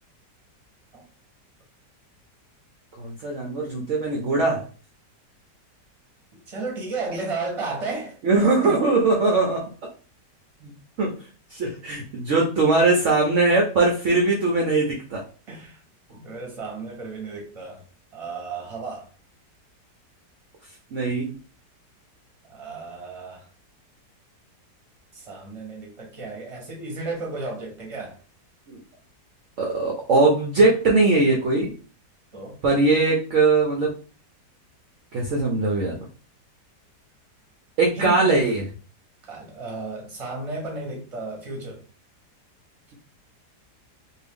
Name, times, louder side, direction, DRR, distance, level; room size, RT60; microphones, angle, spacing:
voice 1, 3.0-4.7 8.2-9.9 10.6-10.7 11.0-11.2 11.5-15.2 20.9-21.3 28.7-28.8 29.6-31.7 32.6-33.9 35.1-36.0 37.8-38.7, right 3 dB, 60° right, 0.8 m, -21 dB
voice 2, 6.5-8.2 8.6-8.8 15.5-15.8 16.1-17.8 18.1-19.1 22.4-23.5 25.1-28.2 32.3-32.6 38.0-38.3 39.2-41.8, right 3 dB, 25° right, 0.9 m, -33 dB
2.7 x 2.6 x 3.5 m
omnidirectional pair, 1.9 m